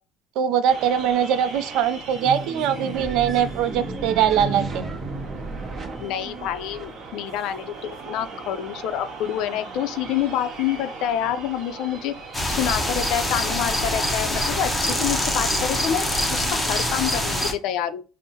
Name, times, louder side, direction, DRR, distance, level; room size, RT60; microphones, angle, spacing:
voice 1, 0.4-4.8, right 9 dB, 65° right, 0.4 m, -22 dB
sound 1, 0.7-17.2, right 3 dB, 45° right, 1.4 m, -37 dB
sound 2, 2.9-6.9, right 3 dB, 30° right, 0.8 m, -36 dB
voice 2, 6.0-12.1 12.5-16.1 16.3-18.0, left 10 dB, 65° left, 0.4 m, -27 dB
sound 3, 12.3-17.5, left 1 dB, 5° left, 0.6 m, -24 dB
5.4 x 2.0 x 2.8 m
cardioid pair, 150°, 0 cm